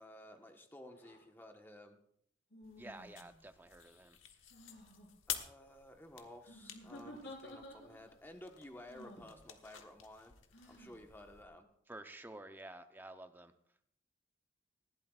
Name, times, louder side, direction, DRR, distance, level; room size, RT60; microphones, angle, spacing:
voice 1, 0.0-2.0 5.3-10.3 10.7-11.6, left 1 dB, 10° left, 4 dB, 1.2 m, -54 dB
sound 1, 0.9-1.2 2.5-3.4 4.5-5.1 6.4-8.2 8.9-9.3 10.5-11.0, left 1 dB, 65° left, 4.5 m, -53 dB
sound 2, 2.6-11.5, left 9 dB, 85° left, 1.2 m, -50 dB
voice 2, 2.8-4.2 11.9-13.5, right 1 dB, 10° right, 8 dB, 0.7 m, -51 dB
20.0 x 14.5 x 2.4 m, 0.70 s
head